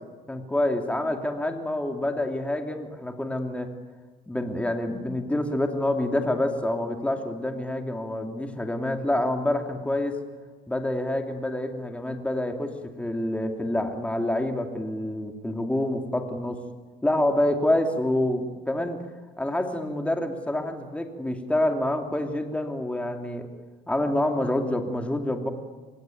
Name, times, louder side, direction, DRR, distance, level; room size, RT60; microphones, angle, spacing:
voice 1, 0.3-3.7 4.3-10.2 10.7-16.6 17.0-19.0 19.4-23.5 23.9-25.5, left 1 dB, 5° left, 4 dB, 2.9 m, -27 dB
25.0 x 24.0 x 9.3 m, 1.4 s
cardioid pair, 110°, 17 cm